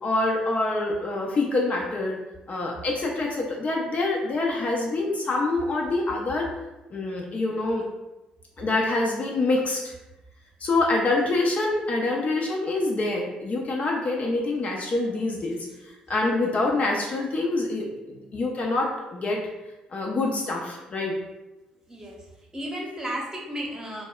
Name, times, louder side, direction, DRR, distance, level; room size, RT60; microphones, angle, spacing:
voice 1, 0.0-2.2 2.5-6.5 6.9-7.8 8.6-9.9 10.6-15.7 16.1-19.4 19.9-21.2, left 2 dB, 40° left, -1 dB, 0.4 m, -26 dB
voice 2, 22.5-24.0, equal, 15° right, -3 dB, 0.8 m, -33 dB
2.6 x 2.1 x 2.2 m, 1.0 s
figure-of-eight pair, 45°, 4 cm